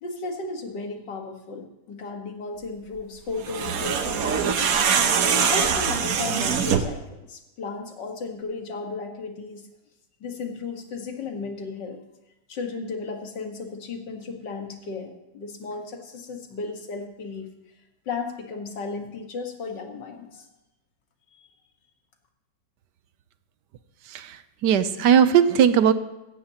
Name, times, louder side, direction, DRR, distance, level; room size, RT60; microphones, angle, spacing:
voice 1, 0.0-4.7 5.3-9.6 10.2-12.0 12.5-17.5 18.1-20.5, left 4 dB, 80° left, 3 dB, 2.2 m, -34 dB
sound 1, 3.4-7.0, right 7 dB, 60° right, 1.2 m, -23 dB
voice 2, 24.1-25.9, right 8 dB, 75° right, 12 dB, 1.3 m, -19 dB
16.5 x 14.5 x 2.9 m, 0.94 s
omnidirectional pair, 1.9 m